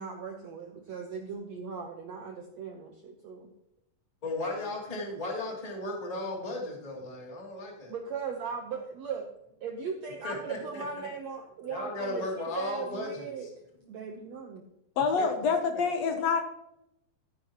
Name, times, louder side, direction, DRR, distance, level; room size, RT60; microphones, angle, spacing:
voice 1, 0.0-3.5 7.9-9.3 9.6-13.5 13.9-14.7, right 6 dB, 75° right, 2 dB, 1.6 m, -38 dB
voice 2, 4.2-7.9 10.2-11.1 11.7-13.5 15.2-15.3, left 2 dB, 10° left, -2 dB, 2.2 m, -36 dB
voice 3, 15.0-16.4, left 5 dB, 70° left, 5 dB, 1.6 m, -26 dB
14.0 x 10.5 x 3.0 m, 0.80 s
omnidirectional pair, 4.4 m